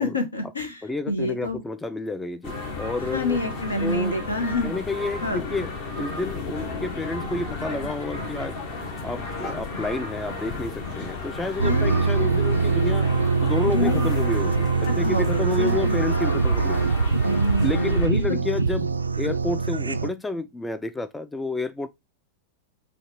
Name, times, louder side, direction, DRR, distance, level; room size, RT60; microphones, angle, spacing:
voice 1, 0.0-1.6 3.1-4.7 5.2-5.4 11.6-12.0 13.7-14.1 14.8-16.0 17.2-18.4, left 2 dB, 75° left, 1.1 m, -27 dB
voice 2, 0.8-3.4 3.8-4.2 4.6-8.6 9.0-13.1 13.4-14.7 15.0-16.9 17.6-21.9, left 2 dB, 10° left, 0.3 m, -30 dB
sound 1, 2.4-18.1, left 3 dB, 45° left, 1.3 m, -34 dB
sound 2, 8.8-16.2, left 3 dB, 25° left, 1.7 m, -46 dB
sound 3, 11.6-20.1, right 4 dB, 80° right, 0.3 m, -23 dB
6.2 x 2.5 x 3.2 m
figure-of-eight pair, 90°, 0 cm